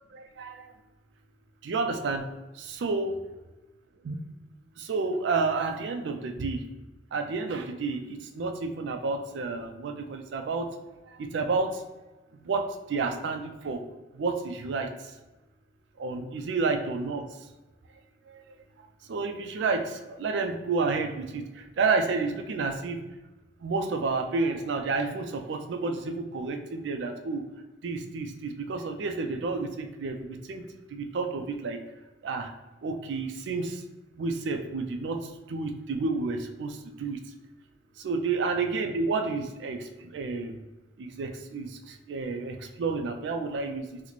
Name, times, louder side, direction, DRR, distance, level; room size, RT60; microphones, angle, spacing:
voice 1, 0.1-0.7 1.6-2.3 2.5-3.2 4.0-4.2 4.8-6.7 7.1-10.7 11.1-11.8 12.4-13.8 14.1-15.1 16.0-17.2 18.3-18.4 19.1-23.0 23.6-27.5 27.8-31.8 32.2-32.5 32.8-33.8 34.2-37.2 38.0-40.6 41.0-44.0, right 4 dB, 85° right, 6 dB, 0.4 m, -30 dB
3.9 x 2.1 x 3.0 m, 1.1 s
head